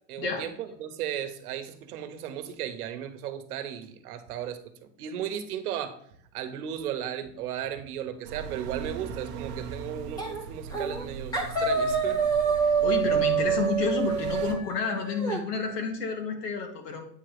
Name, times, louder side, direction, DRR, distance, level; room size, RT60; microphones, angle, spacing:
voice 1, 0.1-6.0 6.3-12.8, right 10 dB, 65° right, 9 dB, 1.0 m, -36 dB
sound 1, 8.2-14.5, right 6 dB, 35° right, 0.6 m, -40 dB
sound 2, 10.2-10.4 10.7-11.0 11.3-15.4, right 6 dB, 10° left, 0.7 m, -26 dB
voice 2, 12.8-17.1, left 4 dB, 75° left, 4 dB, 1.9 m, -30 dB
8.5 x 3.0 x 4.9 m, 0.67 s
supercardioid pair, 160°, 48 cm